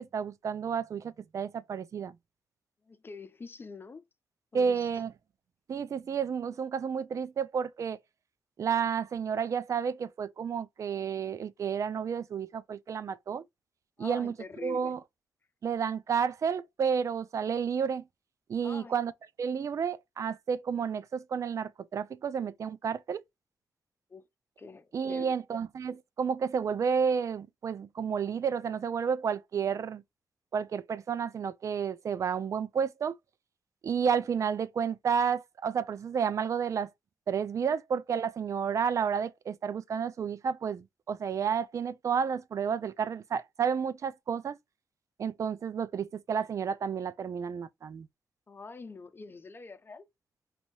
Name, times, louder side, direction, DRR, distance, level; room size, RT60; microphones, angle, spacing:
voice 1, 0.0-2.2 4.5-5.1 5.7-8.0 8.6-13.4 14.0-14.3 14.6-15.0 15.6-18.0 18.5-19.1 19.4-23.2 24.9-30.0 30.5-33.1 33.8-36.9 37.3-44.6 45.2-48.1, right 7 dB, 60° right, 0.4 m, -31 dB
voice 2, 2.9-4.0 4.5-4.9 14.0-14.9 18.6-18.9 19.7-19.8 24.1-24.2 24.6-25.4 48.5-50.1, left 4 dB, 40° left, 0.7 m, -45 dB
4.1 x 2.7 x 3.0 m
cardioid pair, 60°, 6 cm